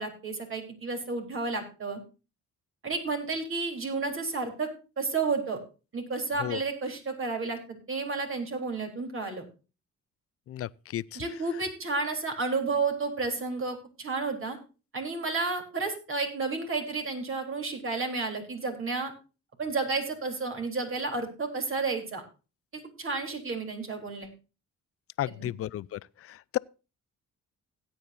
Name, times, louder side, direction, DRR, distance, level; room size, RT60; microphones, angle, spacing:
voice 1, 0.0-2.0 2.8-4.7 5.0-5.6 5.9-7.6 7.9-9.4 11.2-14.6 14.9-19.1 19.6-22.2 23.0-24.3 25.4-25.5, right 4 dB, 45° right, 3.6 m, -31 dB
voice 2, 10.5-11.2 25.2-26.0 26.3-26.6, left 12 dB, 50° left, 0.5 m, -33 dB
17.0 x 9.0 x 2.6 m
cardioid pair, 90°, 30 cm